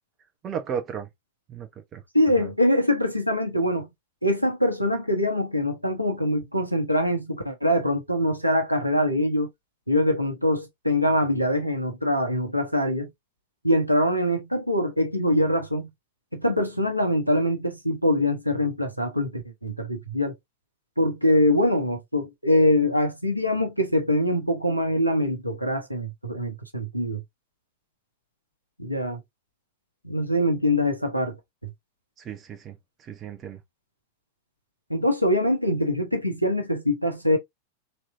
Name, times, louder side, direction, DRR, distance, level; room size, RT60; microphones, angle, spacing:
voice 1, 0.4-1.1 1.5-2.0 2.4-2.5 32.2-32.8 33.0-33.6, right 8 dB, 30° right, 0.9 m, -34 dB
voice 2, 2.1-3.9 4.2-9.5 9.9-13.1 13.6-15.9 16.3-20.3 21.0-27.2 28.8-29.2 30.0-31.4 34.9-37.4, left 1 dB, 90° right, 0.9 m, -23 dB
4.1 x 3.0 x 2.5 m
figure-of-eight pair, 90°, 0 cm